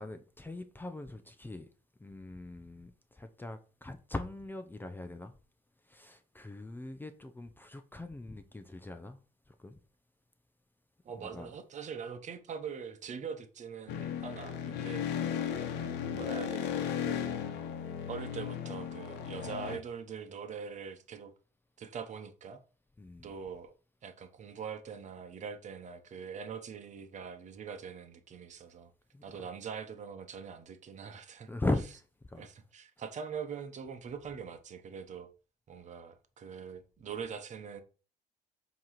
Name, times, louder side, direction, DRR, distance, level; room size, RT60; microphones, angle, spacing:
voice 1, 0.0-1.7 2.0-5.3 5.8-9.2 9.5-9.8 11.2-11.5 23.0-23.3 29.1-29.2 31.5-32.5, left 2 dB, 10° left, 0.6 m, -40 dB
voice 2, 11.0-15.1 16.1-17.4 18.1-21.3 21.8-22.6 23.2-23.7 24.0-28.9 29.2-31.5 32.4-35.3 35.7-37.8, right 6 dB, 45° right, 1.0 m, -43 dB
sound 1, 13.9-19.8, left 8 dB, 90° left, 1.0 m, -35 dB
7.6 x 3.1 x 5.7 m
cardioid pair, 110°, 17 cm